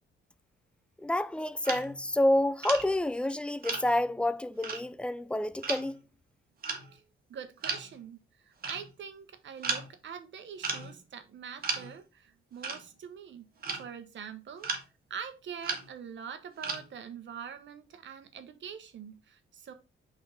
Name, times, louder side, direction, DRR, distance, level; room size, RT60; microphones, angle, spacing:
voice 1, 1.0-6.0, left 1 dB, 5° left, 0.3 m, -28 dB
sound 1, 1.6-2.2 2.6-2.8 3.6-4.1 4.6-4.8 5.6-5.9 6.6-6.9 7.6-8.0 8.6-8.9 9.6-9.9 10.6-11.0 11.6-11.9 12.6-12.8 13.6-13.9 14.6-14.8 15.6-15.9 16.6-16.9, right 4 dB, 45° right, 1.5 m, -35 dB
voice 2, 7.3-13.5 13.7-14.7 15.1-19.7, right 7 dB, 60° right, 1.1 m, -44 dB
5.4 x 3.9 x 5.2 m
cardioid pair, 130°, 21 cm